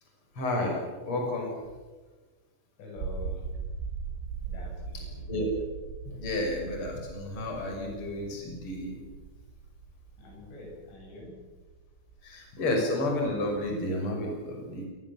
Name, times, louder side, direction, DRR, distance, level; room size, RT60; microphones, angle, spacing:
voice 1, 0.3-0.8 1.0-1.6 5.3-5.5 6.0-9.0 12.2-14.9, left 1 dB, 25° left, 1 dB, 6.6 m, -31 dB
voice 2, 2.8-3.5 4.5-5.3 10.2-11.5, left 2 dB, 70° left, 0 dB, 10.0 m, -46 dB
sound 1, 3.0-13.1, right 5 dB, 90° right, 6.4 m, -40 dB
28.0 x 19.5 x 7.4 m, 1.3 s
omnidirectional pair, 5.9 m